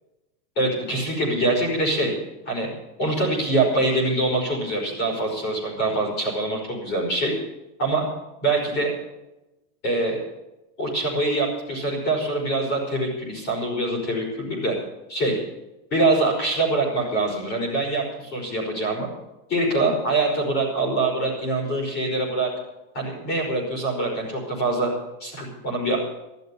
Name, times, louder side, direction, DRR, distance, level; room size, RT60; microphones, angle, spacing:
voice 1, 0.5-2.1 2.4-2.7 3.0-7.3 7.8-8.1 8.4-8.9 9.8-10.2 10.8-14.7 15.1-15.4 15.9-19.1 19.5-22.5 22.9-24.9 25.2-26.0, right 2 dB, 20° left, -1 dB, 5.1 m, -24 dB
13.5 x 12.0 x 7.0 m, 0.98 s
supercardioid pair, 180°, 48 cm